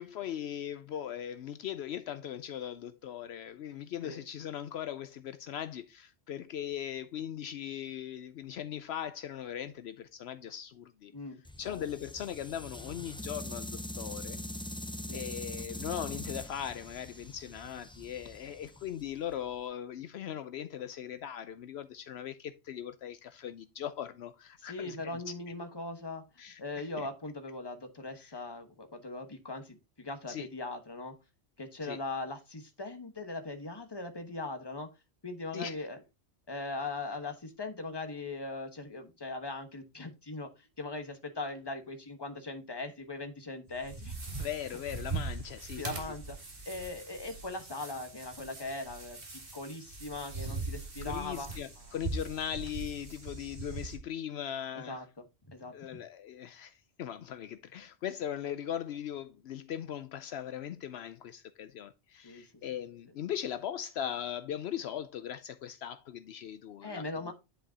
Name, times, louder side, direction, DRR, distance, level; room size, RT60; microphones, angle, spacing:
voice 1, 0.0-11.1 11.6-14.4 15.1-25.3 26.4-27.1 28.2-28.4 30.3-30.5 31.8-32.0 35.5-35.7 44.4-46.1 51.0-55.1 55.7-67.3, left 10 dB, 75° left, 0.8 m, -39 dB
sound 1, 11.4-19.5, left 1 dB, 5° left, 0.4 m, -43 dB
voice 2, 24.6-26.2 26.6-31.1 31.6-34.9 35.2-36.0 36.5-44.2 45.8-46.4 46.7-49.2 49.5-51.5 54.9-55.0 55.5-55.7 62.2-62.4 66.8-67.3, left 2 dB, 25° left, 1.2 m, -40 dB
sound 2, 43.7-54.0, right 3 dB, 55° right, 2.2 m, -41 dB
10.0 x 5.0 x 2.7 m
omnidirectional pair, 1.1 m